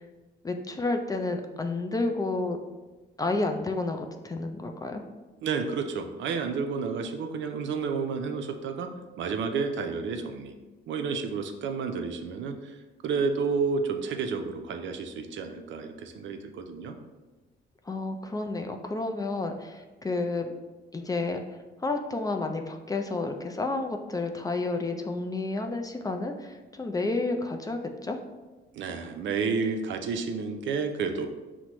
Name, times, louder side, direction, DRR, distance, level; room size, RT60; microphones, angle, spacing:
voice 1, 0.4-2.6 3.2-5.0 17.9-20.6 20.9-21.4 21.8-28.2, left 3 dB, 20° left, 4 dB, 0.3 m, -30 dB
voice 2, 5.4-8.9 9.2-10.5 10.9-12.8 13.0-16.9 28.7-31.3, right 5 dB, 70° right, 6 dB, 0.5 m, -30 dB
5.9 x 2.1 x 2.9 m, 1.2 s
cardioid pair, 90°, 20 cm